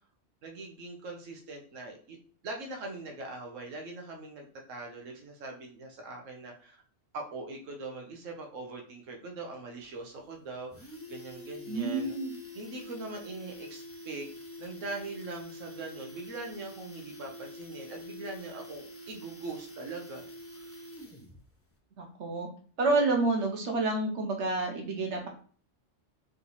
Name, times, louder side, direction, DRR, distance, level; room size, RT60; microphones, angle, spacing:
voice 1, 0.4-2.2 2.4-6.8 7.1-12.2 12.5-14.3 14.6-20.2 20.5-20.7, right 2 dB, 85° right, 1 dB, 1.2 m, -42 dB
sound 1, 9.8-9.9 10.2-10.3 10.6-21.4 21.7-21.8, left 1 dB, 20° left, 0.4 m, -46 dB
voice 2, 11.7-12.3 22.0-22.5 22.8-25.3, right 3 dB, 65° right, 2 dB, 1.3 m, -29 dB
3.7 x 2.9 x 4.0 m, 0.43 s
omnidirectional pair, 1.3 m